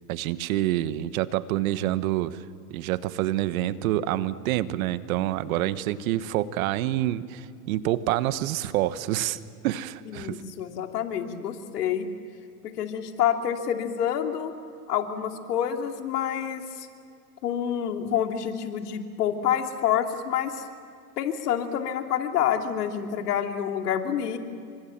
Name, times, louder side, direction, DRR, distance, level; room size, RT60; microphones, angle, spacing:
voice 1, 0.1-2.4 2.7-10.4, right 14 dB, 60° right, 14 dB, 1.3 m, -27 dB
voice 2, 10.1-12.1 12.6-14.5 14.9-16.9 17.4-20.6 21.2-24.4, left 9 dB, 75° left, 5 dB, 2.8 m, -28 dB
29.0 x 25.0 x 7.4 m, 2.3 s
hypercardioid pair, 115°, 48 cm